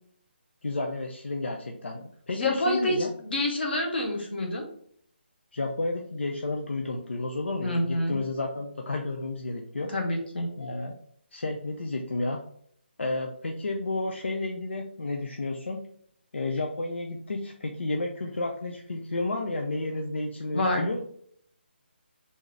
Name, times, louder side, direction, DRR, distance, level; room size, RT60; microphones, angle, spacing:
voice 1, 0.6-3.1 5.5-9.9 10.6-10.9 11.3-12.4 13.0-15.8 16.3-21.0, left 2 dB, 85° left, 1 dB, 0.6 m, -31 dB
voice 2, 2.3-3.0 3.3-4.6 7.6-8.2 9.9-10.5 20.5-20.8, left 1 dB, 60° left, 2 dB, 1.3 m, -27 dB
3.6 x 2.7 x 3.2 m, 0.62 s
figure-of-eight pair, 160°, 6 cm